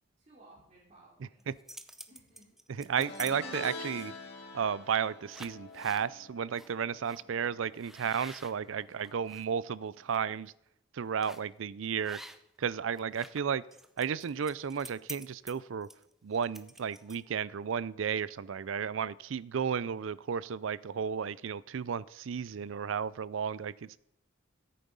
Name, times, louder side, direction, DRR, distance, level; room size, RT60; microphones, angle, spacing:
voice 1, 0.2-1.4 2.1-2.5 8.7-9.2, right 2 dB, 35° right, -7 dB, 3.2 m, -59 dB
sound 1, 1.4-3.3 3.8-4.2 4.8-5.0 5.3-6.1 6.5-6.7 7.0-7.2 7.8-9.4 9.9-10.2 11.2-11.5 12.0-12.6 12.9-17.4, right 1 dB, ahead, 0.6 m, -49 dB
voice 2, 2.9-4.1 4.5-10.5 10.9-12.2 12.6-13.6 14.0-15.9 16.2-24.0, right 7 dB, 80° right, 19 dB, 0.4 m, -33 dB
sound 2, 3.0-8.4 8.6-9.0 10.2-10.3, left 2 dB, 55° left, 2.2 m, -45 dB
14.0 x 8.6 x 5.4 m, 0.77 s
head